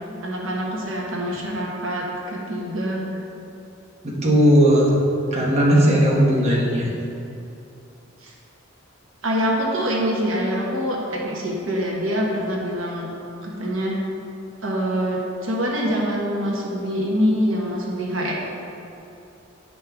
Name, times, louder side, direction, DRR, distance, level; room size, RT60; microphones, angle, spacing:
voice 1, 0.2-3.0 8.2-8.3 9.2-13.1 13.4-14.0 14.6-18.3, equal, 75° right, -3 dB, 1.2 m, -25 dB
voice 2, 4.0-5.0 5.3-6.9, equal, 35° right, -5 dB, 1.1 m, -17 dB
9.8 x 5.4 x 3.5 m, 2.7 s
head